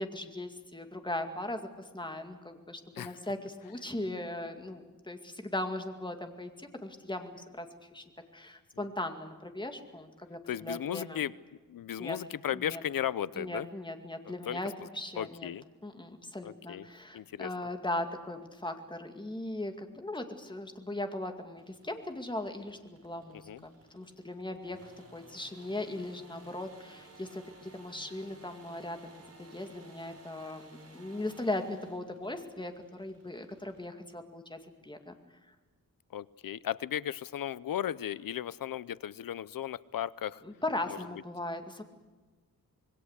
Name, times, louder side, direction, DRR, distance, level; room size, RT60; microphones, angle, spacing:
voice 1, 0.0-8.0 8.3-11.2 12.0-12.2 12.5-12.8 13.3-15.5 15.8-27.4 27.7-35.1 40.4-41.8, left 1 dB, 15° left, 5 dB, 2.2 m, -38 dB
voice 2, 10.5-11.3 11.7-13.7 14.3-14.6 15.2-15.6 16.4-16.9 17.1-17.5 23.3-23.6 36.1-40.4 40.9-41.0, left 10 dB, 80° left, 19 dB, 0.7 m, -35 dB
sound 1, 21.6-33.9, right 2 dB, 45° right, 5.6 m, -57 dB
26.0 x 21.5 x 8.2 m, 1.3 s
wide cardioid pair, 140°, 33 cm